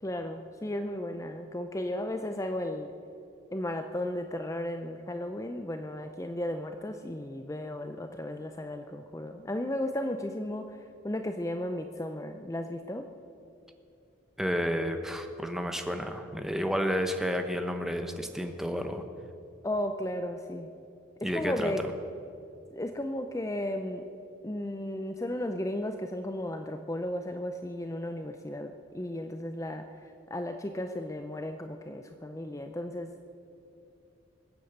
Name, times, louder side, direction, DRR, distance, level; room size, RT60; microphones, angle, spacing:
voice 1, 0.0-2.9 3.5-13.1 19.6-20.7 21.2-21.8 22.7-24.1 24.4-33.3, left 1 dB, 15° left, 7 dB, 0.5 m, -35 dB
voice 2, 14.4-19.0 21.2-21.9, equal, ahead, 5 dB, 0.9 m, -31 dB
20.5 x 8.5 x 7.9 m, 2.6 s
head